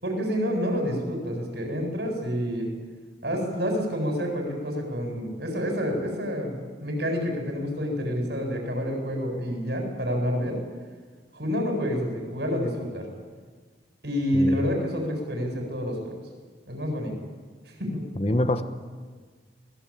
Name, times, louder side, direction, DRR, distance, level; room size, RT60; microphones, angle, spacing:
voice 1, 0.0-2.7 3.2-10.6 11.3-13.1 14.0-16.2 16.7-17.1 17.7-18.1, equal, 70° right, 3 dB, 7.7 m, -28 dB
voice 2, 18.2-18.6, left 1 dB, 35° left, 9 dB, 1.3 m, -25 dB
25.5 x 21.0 x 9.0 m, 1.5 s
head